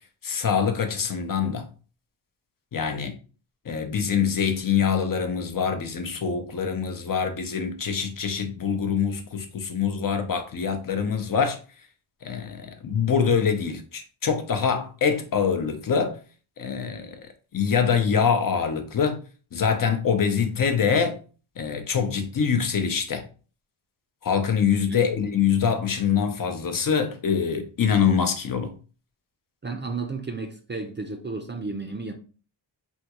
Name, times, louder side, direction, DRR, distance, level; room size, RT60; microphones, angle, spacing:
voice 1, 0.2-1.7 2.7-3.1 3.7-11.6 12.2-16.2 16.6-17.2 17.5-19.2 19.5-21.2 21.6-23.2 24.2-28.7, left 6 dB, 45° left, 0.6 m, -24 dB
voice 2, 29.6-32.1, right 3 dB, 25° right, 0.5 m, -33 dB
3.6 x 2.3 x 2.9 m
cardioid pair, 95°, 46 cm